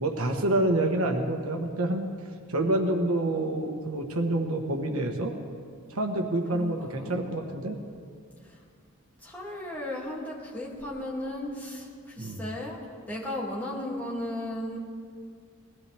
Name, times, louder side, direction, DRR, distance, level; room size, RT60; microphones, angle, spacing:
voice 1, 0.0-2.1 2.5-5.3 5.9-7.8 12.2-12.4, right 1 dB, 90° right, 3 dB, 1.3 m, -27 dB
voice 2, 6.5-7.2 9.2-11.9 12.2-12.8 13.1-14.8, left 1 dB, 10° left, -6 dB, 2.5 m, -35 dB
20.5 x 16.5 x 3.5 m, 2.2 s
head